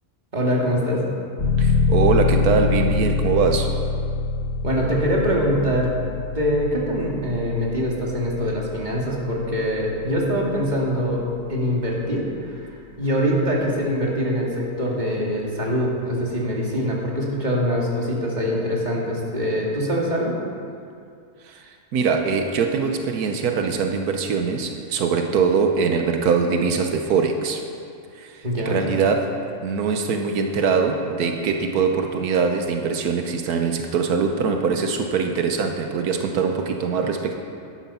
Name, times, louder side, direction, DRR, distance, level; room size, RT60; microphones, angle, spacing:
voice 1, 0.3-1.0 4.6-5.9 6.3-11.2 11.5-12.6 13.0-20.4 28.4-28.8, equal, 30° right, -3 dB, 2.4 m, -23 dB
sound 1, 1.4-11.9, left 4 dB, 80° left, 4.3 m, -25 dB
voice 2, 1.6-3.7 21.4-21.6 21.9-27.6 28.1-37.4, right 5 dB, 90° right, 4 dB, 1.4 m, -22 dB
12.0 x 11.5 x 5.6 m, 2.4 s
omnidirectional pair, 1.6 m